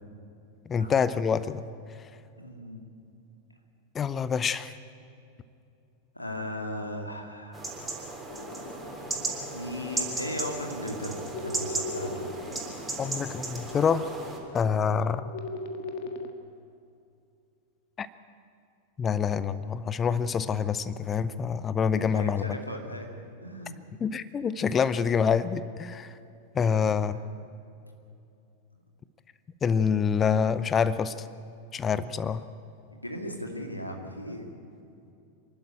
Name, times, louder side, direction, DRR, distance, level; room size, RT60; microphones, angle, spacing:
voice 1, 0.7-1.6 3.9-4.7 13.0-14.1 14.5-15.3 18.0-18.1 19.0-22.5 24.0-26.2 26.5-27.1 29.6-31.3 31.7-32.5, left 6 dB, 20° left, 15 dB, 0.7 m, -26 dB
voice 2, 2.4-2.9 6.1-7.8 9.5-12.3 22.0-23.1 23.4-23.8 26.7-26.9 33.0-34.5, left 1 dB, 85° left, 3 dB, 2.5 m, -37 dB
sound 1, 7.5-14.4, right 3 dB, 10° right, 3.7 m, -35 dB
sound 2, 8.3-16.3, left 2 dB, 50° left, 1.6 m, -40 dB
27.0 x 12.0 x 9.1 m, 2.6 s
figure-of-eight pair, 90°, 0 cm